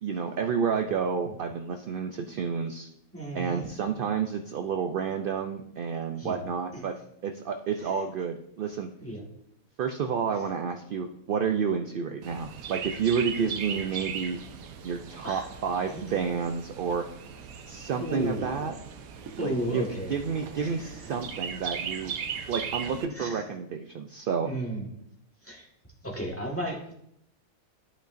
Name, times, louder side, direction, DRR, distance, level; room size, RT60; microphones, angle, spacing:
voice 1, 0.0-2.9 3.3-7.0 7.2-8.9 9.8-14.4 14.8-17.0 17.7-18.8 19.4-19.8 20.1-22.1 22.5-24.5, right 6 dB, 70° right, 5 dB, 0.5 m, -30 dB
voice 2, 3.1-3.7 6.1-6.5 7.8-8.0 9.0-9.2 15.2-15.5 15.9-16.0 18.0-18.7 19.4-20.2 20.6-20.9 23.1-23.4 24.4-24.9 25.4-25.6 26.0-26.9, right 1 dB, 10° left, -3 dB, 1.4 m, -34 dB
Chirp tweet, 12.2-23.1, right 7 dB, 90° right, 1.2 m, -38 dB
12.0 x 5.2 x 2.5 m, 0.75 s
omnidirectional pair, 1.4 m